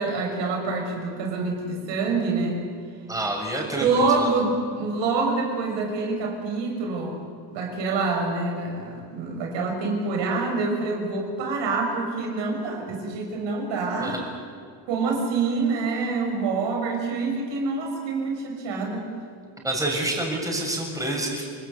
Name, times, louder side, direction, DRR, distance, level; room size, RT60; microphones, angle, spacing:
voice 1, 0.0-2.6 3.8-7.2 7.5-14.2 14.9-19.1, right 3 dB, 85° right, 1 dB, 6.6 m, -26 dB
voice 2, 3.1-4.3 14.0-14.2 19.6-21.4, right 1 dB, 10° right, -1 dB, 6.6 m, -28 dB
29.0 x 20.0 x 8.3 m, 2.2 s
cardioid pair, 125°, 43 cm